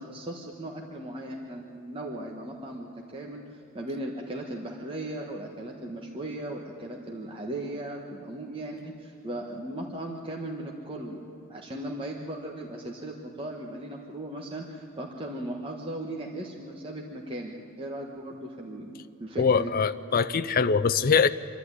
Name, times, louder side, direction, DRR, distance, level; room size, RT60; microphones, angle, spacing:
voice 1, 0.0-11.2 11.5-18.9 19.2-19.7, right 1 dB, 25° right, -1 dB, 1.5 m, -37 dB
voice 2, 19.4-21.3, left 5 dB, 45° left, 10 dB, 0.5 m, -23 dB
27.0 x 11.5 x 9.8 m, 2.8 s
head